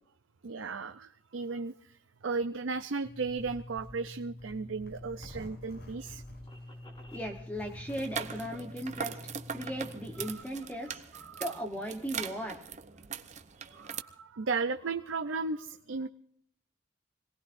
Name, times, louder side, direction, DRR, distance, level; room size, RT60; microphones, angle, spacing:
voice 1, 0.4-6.2 10.2-10.4 11.2-11.4 13.6-16.1, right 4 dB, 90° right, 8 dB, 0.6 m, -35 dB
Zipper (clothing), 3.0-10.3, left 1 dB, 55° left, 6.2 m, -47 dB
sound 1, 4.3-7.4, equal, 25° left, 4.6 m, -57 dB
voice 2, 7.1-11.0 11.4-12.6, equal, 10° left, 3 dB, 1.1 m, -37 dB
sound 2, 7.9-14.0, right 6 dB, 40° right, 0.8 m, -41 dB
26.0 x 18.5 x 2.6 m, 0.66 s
head